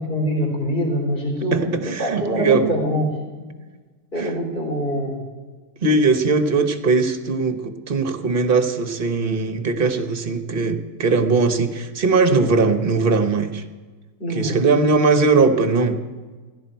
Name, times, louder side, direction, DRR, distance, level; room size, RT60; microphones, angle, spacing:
voice 1, 0.0-3.1 4.1-5.2 14.2-14.7, equal, 35° left, -2 dB, 3.8 m, -24 dB
voice 2, 1.5-2.7 4.2-4.3 5.8-13.6 14.3-16.0, right 4 dB, 40° right, 8 dB, 1.0 m, -20 dB
16.0 x 15.5 x 4.6 m, 1.3 s
omnidirectional pair, 1.7 m